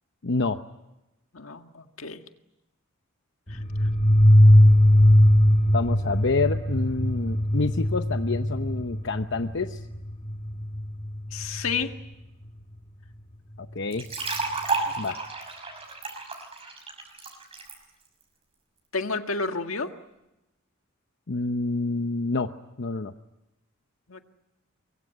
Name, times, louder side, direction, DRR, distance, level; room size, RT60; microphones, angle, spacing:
voice 1, 0.2-0.6 5.7-9.8 13.6-14.1 15.0-15.2 21.3-22.5 22.8-23.1, left 3 dB, 60° left, 8 dB, 0.9 m, -27 dB
voice 2, 1.3-2.2 3.5-3.9 11.3-11.9 14.9-15.0 18.9-19.9 24.1-24.2, left 4 dB, 80° left, 6 dB, 1.9 m, -31 dB
sound 1, 3.5-11.9, equal, 30° left, 2.0 m, -20 dB
sound 2, 13.9-17.7, right 3 dB, 30° right, 6.3 m, -31 dB
24.5 x 22.5 x 9.6 m, 0.97 s
head